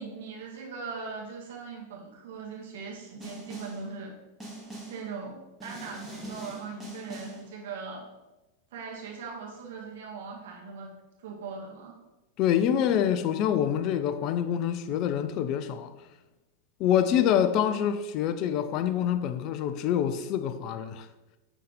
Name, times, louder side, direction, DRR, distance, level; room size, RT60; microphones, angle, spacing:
voice 1, 0.0-4.1 4.9-8.0 8.7-10.9 11.2-12.0, right 5 dB, 55° right, 1.9 m, -40 dB
Snare drum, 3.2-3.9 4.4-5.1 5.6-7.5, right 2 dB, 5° right, 1.9 m, -42 dB
voice 2, 12.4-15.9 16.8-21.1, left 9 dB, 40° left, 0.5 m, -26 dB
9.2 x 4.0 x 3.7 m
figure-of-eight pair, 90°, 0 cm